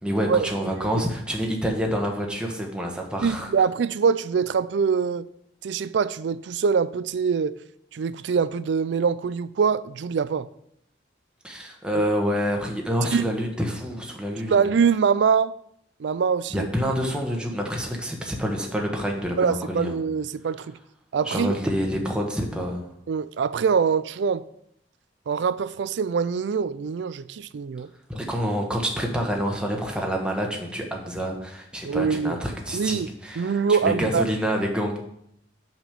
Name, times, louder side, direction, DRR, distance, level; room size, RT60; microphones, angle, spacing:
voice 1, 0.0-3.5 11.4-14.7 16.5-20.0 21.2-22.9 28.1-35.0, equal, 5° right, 1.1 m, -27 dB
voice 2, 3.2-5.2 5.6-7.5 7.9-10.5 12.0-12.1 13.1-13.2 14.5-15.5 16.0-16.7 19.4-20.7 21.1-21.5 23.1-24.4 25.3-27.9 31.8-32.4 32.7-33.1 33.4-34.2, right 6 dB, 70° right, 0.4 m, -24 dB
6.1 x 5.2 x 6.7 m
head